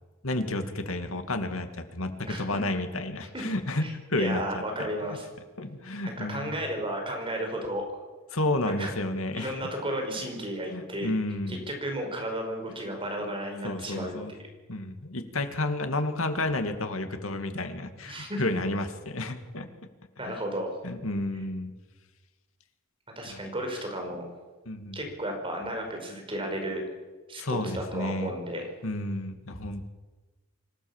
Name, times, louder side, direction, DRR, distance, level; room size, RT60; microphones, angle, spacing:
voice 1, 0.2-2.1 2.4-4.9 5.6-6.5 8.3-9.6 10.7-11.7 13.6-14.3 14.7-19.7 20.3-20.4 20.8-21.7 23.2-23.5 24.7-25.1 27.4-28.3 28.8-29.9, left 2 dB, 90° left, 7 dB, 2.3 m, -31 dB
voice 2, 3.8-5.3 6.0-7.8 8.8-8.9 9.4-11.1 11.5-14.1 18.1-18.4 20.2-20.7 23.2-24.3 24.9-26.8 27.3-28.7, right 1 dB, 25° right, 2 dB, 5.5 m, -33 dB
26.0 x 16.0 x 7.3 m, 1.2 s
head